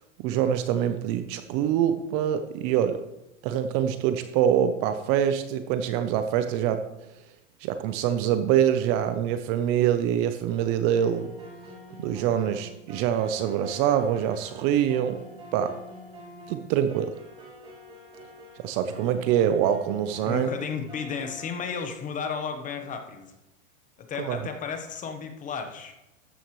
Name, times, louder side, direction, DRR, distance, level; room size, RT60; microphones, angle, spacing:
voice 1, 0.2-3.0 3.4-6.8 7.6-11.3 12.0-15.2 15.5-15.8 16.5-17.1 18.6-20.5 24.2-24.4, right 10 dB, 35° right, 9 dB, 0.7 m, -25 dB
sound 1, 10.5-21.5, equal, 15° right, 3.0 m, -46 dB
voice 2, 20.3-23.3 24.0-25.9, left 6 dB, 20° left, 6 dB, 1.1 m, -33 dB
13.5 x 9.1 x 3.2 m, 0.91 s
supercardioid pair, 145°, 38 cm